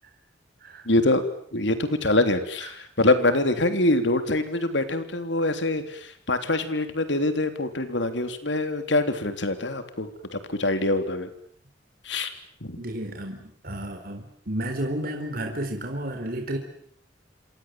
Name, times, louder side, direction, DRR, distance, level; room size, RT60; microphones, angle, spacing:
voice 1, 0.9-1.2 1.5-11.3 12.0-12.3 12.6-12.8, left 2 dB, 75° left, 9 dB, 3.5 m, -24 dB
voice 2, 12.8-16.6, right 1 dB, 50° right, 4 dB, 4.0 m, -32 dB
28.0 x 26.5 x 7.7 m, 0.62 s
head